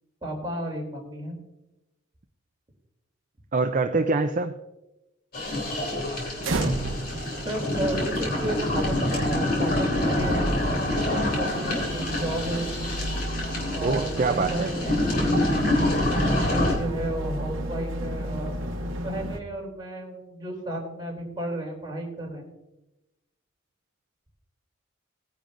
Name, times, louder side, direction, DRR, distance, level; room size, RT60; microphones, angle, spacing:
voice 1, 0.2-1.4 7.4-10.5 11.1-12.9 13.7-15.5 16.2-22.5, right 1 dB, 20° right, -2 dB, 3.2 m, -34 dB
voice 2, 3.5-4.6 13.8-14.7, right 3 dB, 40° right, 7 dB, 0.5 m, -24 dB
sound 1, 5.3-16.7, left 1 dB, 45° left, 3.3 m, -26 dB
sound 2, 6.4-19.4, right 1 dB, 70° right, 1.0 m, -33 dB
19.0 x 10.0 x 2.6 m, 0.95 s
head